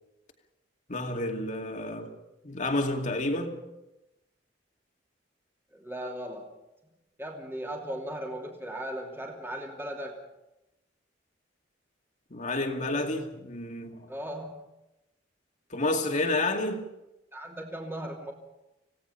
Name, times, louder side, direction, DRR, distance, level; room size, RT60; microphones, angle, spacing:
voice 1, 0.9-2.1 2.4-3.6 12.3-14.1 15.7-16.8, left 2 dB, 45° left, 2.4 m, -30 dB
voice 2, 5.7-6.5 7.2-10.2 14.1-14.6 17.3-18.3, right 1 dB, 15° right, 2.8 m, -37 dB
27.0 x 17.5 x 5.7 m
head